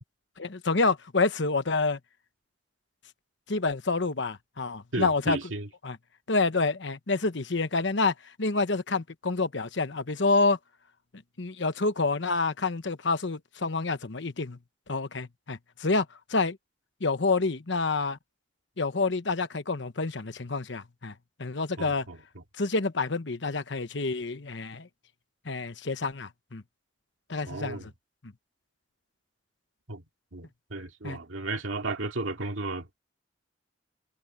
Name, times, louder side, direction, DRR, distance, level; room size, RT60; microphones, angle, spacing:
voice 1, 0.4-2.0 3.5-5.4 5.8-6.0 6.3-10.6 11.4-14.6 14.9-16.6 17.0-18.2 18.8-21.1 21.4-22.1 22.6-24.9 25.4-26.6 27.3-27.9 31.0-31.2, left 3 dB, 70° left, 1.1 m, -28 dB
voice 2, 4.9-5.7 21.8-22.4 27.5-27.9 29.9-30.0 30.3-32.9, right 2 dB, 85° right, 2.4 m, -34 dB
head